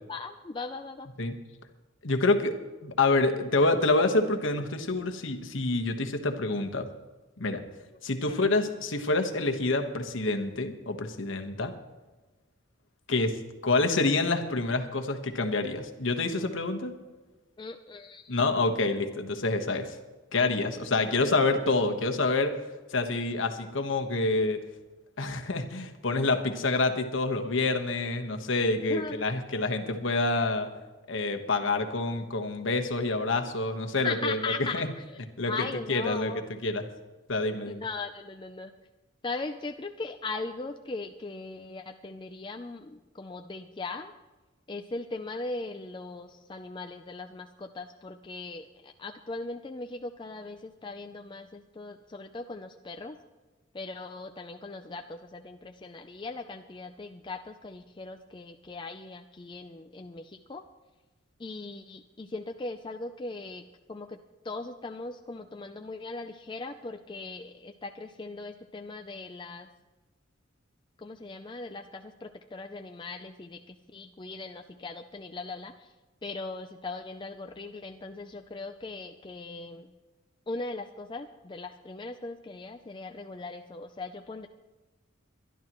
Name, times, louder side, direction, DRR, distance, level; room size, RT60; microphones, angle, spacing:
voice 1, 0.1-1.1 7.9-8.0 8.3-8.5 11.6-11.8 17.6-18.3 28.9-29.2 34.0-36.4 37.6-38.7 39.2-44.1 44.7-53.2 53.7-60.6 61.4-64.2 64.4-69.7 71.0-75.9 76.2-79.9 80.5-84.5, left 3 dB, 25° left, 5 dB, 0.4 m, -39 dB
voice 2, 2.0-2.6 2.8-6.9 7.4-7.6 8.0-11.7 13.1-16.9 18.3-20.0 20.3-22.6 22.9-24.6 25.2-30.7 31.1-34.4 34.7-34.9 35.4-35.5 35.9-36.3 36.6-36.9 37.3-37.8, left 3 dB, 70° left, 5 dB, 1.3 m, -27 dB
23.5 x 11.5 x 3.0 m, 1.2 s
head